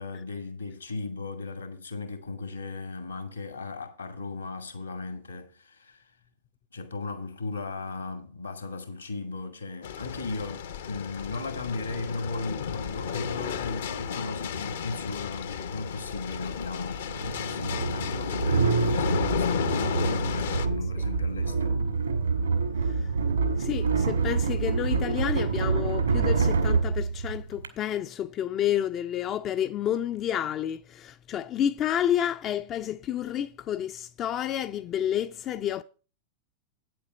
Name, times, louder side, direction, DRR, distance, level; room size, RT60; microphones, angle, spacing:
voice 1, 0.0-6.0 6.7-17.1 17.3-21.9, left 3 dB, 80° left, 2.0 m, -36 dB
sound 1, 9.8-20.7, left 7 dB, 60° left, 0.7 m, -33 dB
sound 2, 16.0-16.1 17.1-27.7, right 4 dB, 75° right, 1.9 m, -26 dB
voice 2, 23.6-35.8, left 10 dB, 30° left, 0.4 m, -30 dB
9.1 x 7.7 x 5.0 m
figure-of-eight pair, 90°, 0 cm